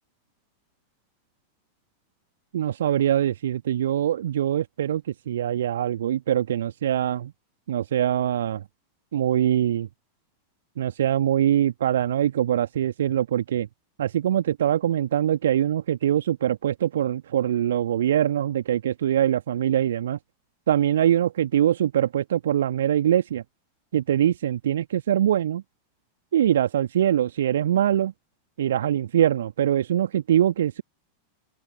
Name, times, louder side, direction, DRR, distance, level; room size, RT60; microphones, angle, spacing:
voice 1, 2.5-7.3 7.7-8.6 9.1-9.9 10.8-13.7 14.0-20.2 20.7-23.4 23.9-25.6 26.3-28.1 28.6-30.8, right 11 dB, 60° right, 1.8 m, -23 dB
open air
figure-of-eight pair, 90°, 0 cm